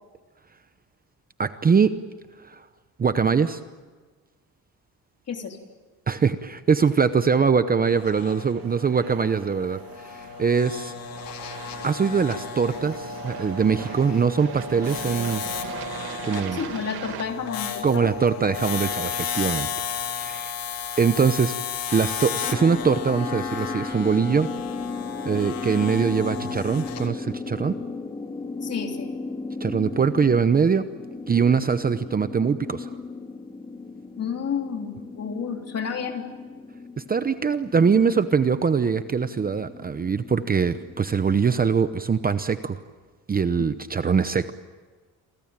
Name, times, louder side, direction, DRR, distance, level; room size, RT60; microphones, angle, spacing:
voice 1, 1.4-2.0 2.4-2.6 3.0-3.6 6.1-10.9 11.8-15.4 16.2-16.6 17.8-19.7 20.1-20.5 21.0-21.5 21.9-24.5 25.2-27.7 29.6-30.9 31.3-32.9 37.1-42.8 43.3-44.5, right 6 dB, 25° right, 11 dB, 0.8 m, -22 dB
voice 2, 5.3-5.6 16.5-18.1 28.6-29.1 34.2-36.2, left 6 dB, 40° left, 3 dB, 3.5 m, -30 dB
sound 1, 7.8-27.1, left 7 dB, 65° left, 3.7 m, -34 dB
Aircraft, 8.0-17.2, right 10 dB, 75° right, 2.1 m, -40 dB
sound 2, 22.4-41.7, left 3 dB, 15° left, 2.7 m, -36 dB
28.0 x 23.5 x 8.9 m, 1.4 s
cardioid pair, 145°, 37 cm